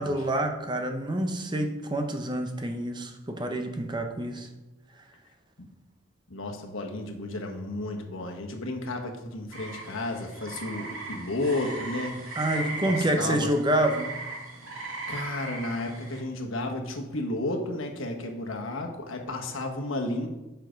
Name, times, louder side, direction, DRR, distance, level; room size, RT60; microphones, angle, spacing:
voice 1, 0.0-4.5 12.4-14.2, right 1 dB, 20° right, 5 dB, 0.7 m, -27 dB
voice 2, 6.3-12.2 12.8-13.5 15.1-20.3, left 2 dB, 80° left, 2 dB, 1.3 m, -32 dB
sound 1, 9.5-16.2, right 2 dB, 85° right, 2.6 m, -38 dB
7.4 x 5.8 x 5.1 m, 1.0 s
head